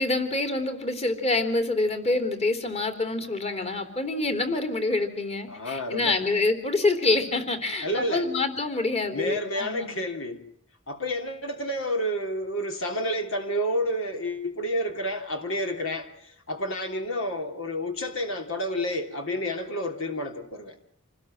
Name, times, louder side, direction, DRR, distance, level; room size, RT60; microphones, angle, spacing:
voice 1, 0.0-9.9, left 2 dB, 30° left, 3.5 m, -26 dB
voice 2, 5.5-6.2 7.8-8.3 9.1-10.4 10.9-20.8, equal, 65° left, 3.2 m, -30 dB
28.0 x 20.0 x 7.8 m
head